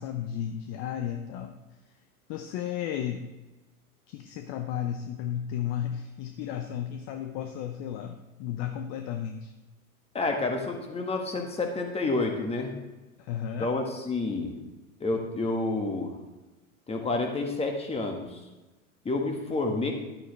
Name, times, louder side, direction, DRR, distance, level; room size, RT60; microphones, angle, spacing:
voice 1, 0.0-1.6 2.3-3.2 4.1-9.5 13.2-13.7, left 9 dB, 40° left, 7 dB, 0.7 m, -33 dB
voice 2, 10.1-12.7 13.6-14.5 15.0-16.1 16.9-18.4 19.0-19.9, left 3 dB, 15° left, 3 dB, 1.6 m, -29 dB
12.0 x 8.7 x 3.3 m, 1.1 s
figure-of-eight pair, 90°, 42 cm